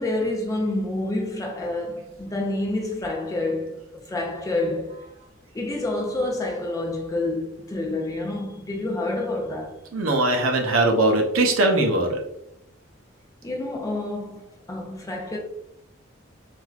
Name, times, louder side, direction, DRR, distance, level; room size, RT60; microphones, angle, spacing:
voice 1, 0.0-5.0 5.5-9.8 13.4-15.4, left 2 dB, 15° left, 0.4 m, -28 dB
voice 2, 9.9-12.2, right 2 dB, 90° right, 0.6 m, -20 dB
3.2 x 2.5 x 2.3 m
head